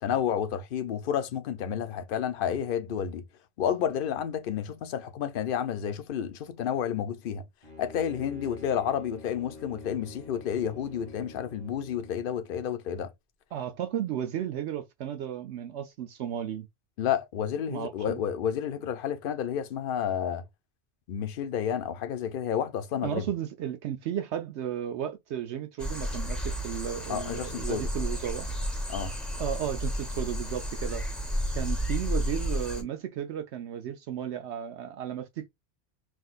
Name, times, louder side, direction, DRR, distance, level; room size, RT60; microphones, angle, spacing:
voice 1, 0.0-3.2 3.6-7.4 7.8-13.1 17.0-20.4 21.1-23.3 27.1-27.9 28.9-29.1, left 9 dB, 55° left, 0.7 m, -30 dB
Bowed string instrument, 7.6-12.4, left 3 dB, 30° right, 2.4 m, -46 dB
voice 2, 13.5-16.7 17.7-18.2 23.0-28.5 29.4-31.0 31.5-35.5, right 10 dB, 75° right, 0.8 m, -34 dB
sound 1, 25.8-32.8, equal, ahead, 0.9 m, -32 dB
5.9 x 2.6 x 2.4 m
omnidirectional pair, 1.2 m